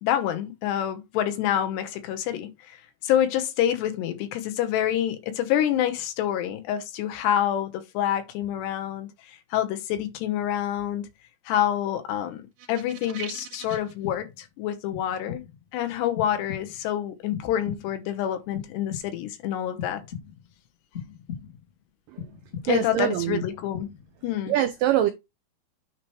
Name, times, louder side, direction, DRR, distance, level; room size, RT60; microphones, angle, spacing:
voice 1, 0.0-2.8 3.0-11.1 11.5-15.4 15.7-20.0 22.6-23.9 24.2-24.5, left 11 dB, 85° left, 3.3 m, -27 dB
sound 1, 12.6-13.9, right 8 dB, 55° right, 3.3 m, -40 dB
sound 2, 13.7-14.5 14.9-15.6 16.2-16.9 17.3-18.1 18.5-19.4 19.8-20.6 20.9-21.7 22.2-23.0 23.4-24.2, left 8 dB, 45° left, 0.8 m, -39 dB
voice 2, 22.7-23.4 24.5-25.1, right 11 dB, 80° right, 1.9 m, -23 dB
9.4 x 3.1 x 4.7 m
omnidirectional pair, 4.7 m